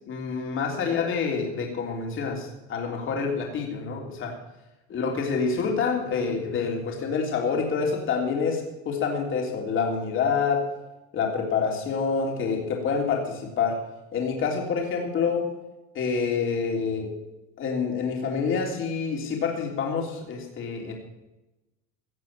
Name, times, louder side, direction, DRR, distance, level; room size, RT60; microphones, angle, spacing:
voice 1, 0.1-4.3 4.9-10.7 11.1-13.8 14.1-15.5 15.9-17.1 17.6-20.9, left 5 dB, 35° left, 0 dB, 3.4 m, -27 dB
17.0 x 6.9 x 7.3 m, 0.99 s
supercardioid pair, 130°, 36 cm